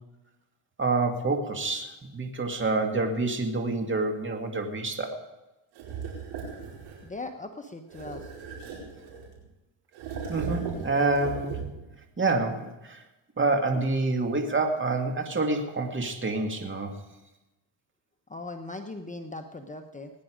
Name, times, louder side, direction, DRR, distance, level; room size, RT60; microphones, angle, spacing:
voice 1, 0.8-5.2 10.3-11.7 12.2-13.0 13.4-17.0, right 3 dB, 25° right, 3 dB, 2.4 m, -27 dB
sound 1, 5.7-7.1 7.9-9.4 9.9-11.9, right 5 dB, 90° right, 4.9 m, -37 dB
voice 2, 7.0-8.3 18.3-20.1, left 2 dB, 15° left, 5 dB, 1.0 m, -39 dB
19.5 x 10.0 x 5.1 m, 1.0 s
cardioid pair, 85°, 47 cm